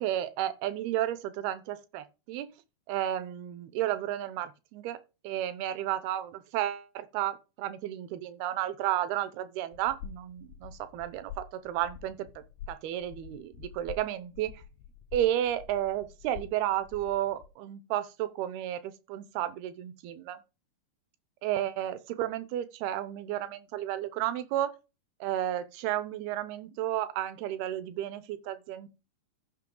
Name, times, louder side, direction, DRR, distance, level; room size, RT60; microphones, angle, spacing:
voice 1, 0.0-2.5 2.9-5.0 5.2-14.6 15.1-20.4 21.4-24.7 25.2-28.9, right 12 dB, 80° right, 2.7 m, -32 dB
sound 1, 9.7-17.5, left 8 dB, 80° left, 2.3 m, -47 dB
14.0 x 5.6 x 3.8 m
omnidirectional pair, 4.7 m